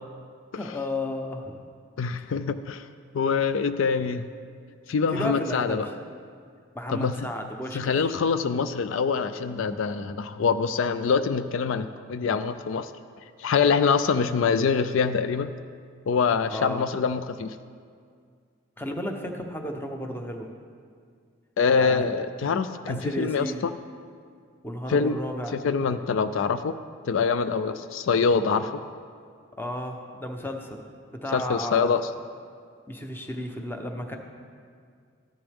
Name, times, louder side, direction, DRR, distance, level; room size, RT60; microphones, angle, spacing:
voice 1, 0.5-1.6 4.9-5.9 6.7-8.1 16.5-16.9 18.8-20.5 21.7-22.1 22.9-23.7 24.6-25.6 27.6-27.8 29.6-30.8 31.1-31.9 32.9-34.2, left 1 dB, 10° left, 3 dB, 0.8 m, -33 dB
voice 2, 2.0-2.9 3.1-4.2 4.9-5.9 6.9-7.3 7.7-12.9 13.4-15.5 16.1-17.6 21.6-23.5 24.9-25.2 25.5-26.7 27.1-28.8 31.3-32.0, left 5 dB, 70° left, 11 dB, 0.4 m, -24 dB
14.0 x 10.0 x 3.5 m, 2.1 s
head